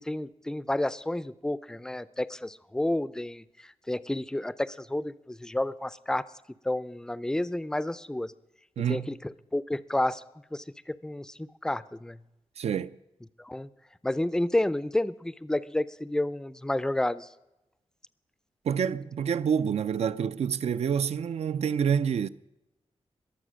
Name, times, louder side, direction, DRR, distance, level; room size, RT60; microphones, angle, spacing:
voice 1, 0.0-6.3 6.6-8.3 8.9-9.2 9.5-10.2 10.5-12.2 13.4-13.7 14.0-17.3, left 1 dB, 5° left, 0.4 m, -30 dB
voice 2, 8.8-9.1 12.6-13.0 18.6-22.3, right 7 dB, 80° right, 0.5 m, -27 dB
21.0 x 7.5 x 6.3 m
wide cardioid pair, 160°, 11 cm